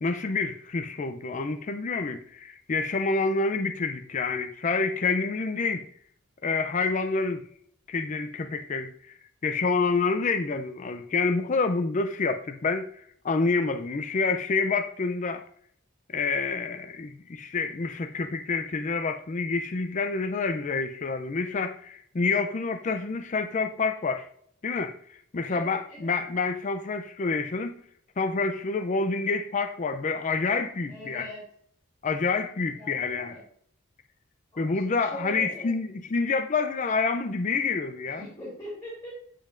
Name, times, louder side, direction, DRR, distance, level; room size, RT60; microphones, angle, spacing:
voice 1, 0.0-5.9 6.4-7.4 7.9-8.9 9.4-12.9 13.2-15.4 16.1-24.3 24.6-24.9 25.3-27.8 28.2-31.3 32.0-33.4 34.6-38.2, left 4 dB, 35° left, 0.4 m, -28 dB
voice 2, 25.5-26.1 30.9-31.4 32.8-33.4 34.5-35.8 38.0-39.1, equal, 15° left, 3.2 m, -41 dB
7.4 x 7.1 x 2.5 m
head